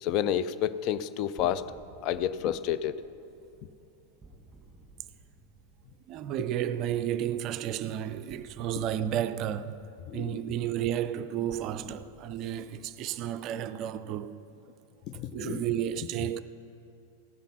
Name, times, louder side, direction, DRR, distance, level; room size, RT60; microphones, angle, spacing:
voice 1, 0.0-1.7 2.0-3.0 10.1-10.4 15.1-15.6, left 10 dB, 40° left, 0.4 m, -30 dB
sound 1, 1.4-7.1 8.3-14.6, right 2 dB, 10° right, 1.8 m, -57 dB
voice 2, 6.1-9.9 10.1-14.4 15.3-16.4, right 10 dB, 40° right, 0.4 m, -32 dB
16.0 x 7.1 x 5.7 m
figure-of-eight pair, 90°, 0 cm